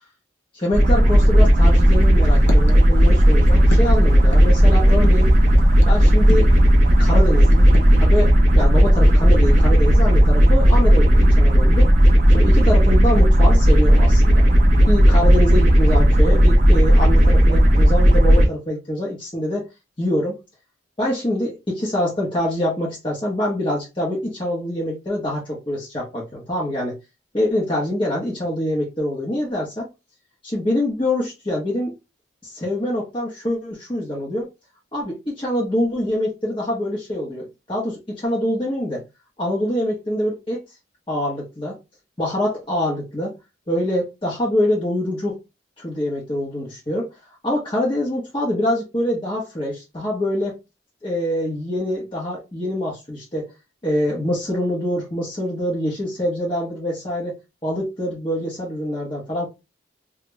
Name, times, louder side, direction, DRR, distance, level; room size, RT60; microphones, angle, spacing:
voice 1, 0.5-5.3 5.9-6.5 7.0-7.7 8.0-11.9 12.3-14.5 14.9-19.7 20.0-20.4 21.0-26.9 27.3-29.9 30.4-31.9 32.4-34.5 34.9-39.0 39.4-40.6 41.1-41.8 42.2-43.3 43.7-45.4 45.8-47.1 47.4-50.6 51.0-53.5 53.8-57.4 57.6-59.5, left 1 dB, 25° left, 1.0 m, -25 dB
sound 1, 0.7-18.4, equal, 40° right, 0.9 m, -13 dB
sound 2, 1.8-8.0, left 1 dB, 65° left, 0.6 m, -36 dB
2.9 x 2.4 x 3.1 m
head